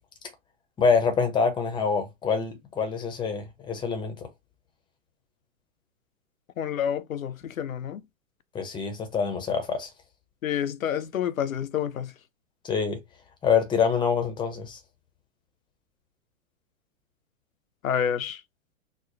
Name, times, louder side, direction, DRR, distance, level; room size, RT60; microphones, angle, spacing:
voice 1, 0.8-4.3 8.5-9.9 12.6-13.0 13.4-14.8, left 6 dB, 10° left, 0.6 m, -25 dB
voice 2, 6.6-8.0 10.4-12.1 17.8-18.4, left 9 dB, 80° left, 0.5 m, -28 dB
3.1 x 2.1 x 4.0 m
figure-of-eight pair, 110°, 40 cm